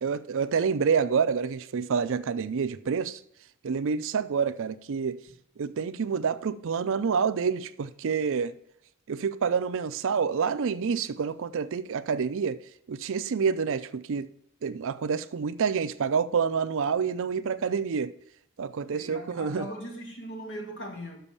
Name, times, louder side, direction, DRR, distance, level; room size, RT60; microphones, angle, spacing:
voice 1, 0.0-3.2 3.6-5.2 5.6-8.5 9.1-12.6 12.9-14.3 14.6-18.1 18.6-19.7, right 6 dB, 60° right, 0.5 m, -28 dB
voice 2, 18.9-21.2, equal, 55° left, 2.0 m, -39 dB
6.8 x 6.0 x 7.0 m
head